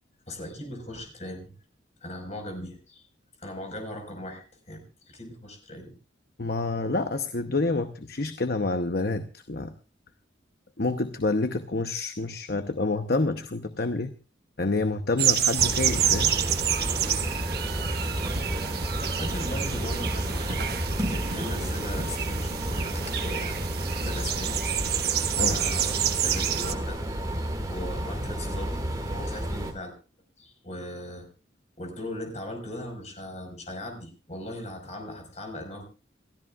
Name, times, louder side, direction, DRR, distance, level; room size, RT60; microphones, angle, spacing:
voice 1, 0.3-1.5 2.0-3.0 3.4-6.0 17.2-17.4 18.5-18.7 19.1-20.7 21.1-23.6 24.0-24.9 25.4-27.4 27.7-28.8 29.0-29.9 30.4-31.3 31.8-35.8, left 1 dB, 35° left, 3 dB, 4.9 m, -39 dB
voice 2, 6.4-9.7 10.8-14.1 14.6-16.3 25.4-25.6, left 2 dB, 50° left, 8 dB, 0.9 m, -28 dB
sound 1, 15.2-26.7, right 9 dB, 55° right, 1.3 m, -28 dB
sound 2, 15.6-29.7, right 1 dB, 20° right, 2.1 m, -31 dB
28.5 x 13.5 x 2.4 m, 0.33 s
head